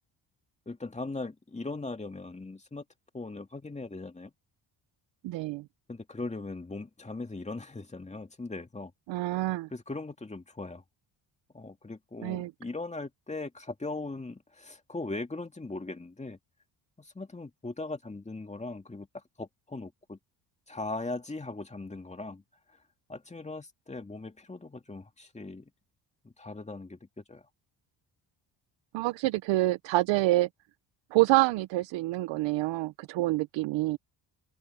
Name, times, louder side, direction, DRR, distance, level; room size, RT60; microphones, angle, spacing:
voice 1, 0.7-2.8 3.1-4.3 5.9-8.9 9.7-10.8 11.5-16.4 17.0-20.2 20.7-22.4 22.7-22.8 23.1-25.7 26.2-27.5, left 3 dB, 15° left, 2.4 m, -39 dB
voice 2, 5.2-5.6 9.1-9.7 12.2-12.5 28.9-30.5 31.1-34.0, right 18 dB, 90° right, 0.7 m, -27 dB
open air
cardioid pair, 95°, 43 cm